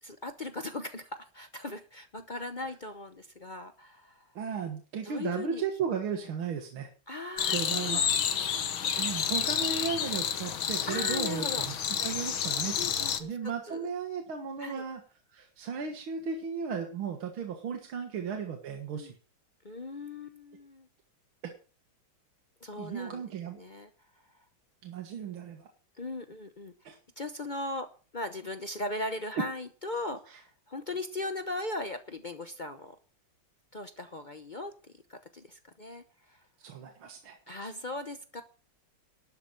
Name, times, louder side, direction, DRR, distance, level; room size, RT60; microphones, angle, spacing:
voice 1, 0.0-4.3 5.0-5.6 7.1-8.7 9.1-9.7 10.9-11.7 12.7-13.9 14.6-14.8 18.9-19.1 19.6-20.9 22.6-23.2 23.5-23.9 26.0-26.7 27.2-33.0 33.7-36.4 37.5-38.4, left 2 dB, 55° left, 8 dB, 0.5 m, -39 dB
voice 2, 4.4-6.9 7.5-8.1 8.8-15.0 15.3-19.1 22.8-23.6 24.8-25.7 26.8-27.0 30.3-30.4 36.6-37.4 37.6-37.7, right 6 dB, 80° right, 3 dB, 2.4 m, -35 dB
sound 1, 7.4-13.2, left 8 dB, 80° left, 2.0 m, -30 dB
12.0 x 6.7 x 8.8 m, 0.37 s
omnidirectional pair, 2.2 m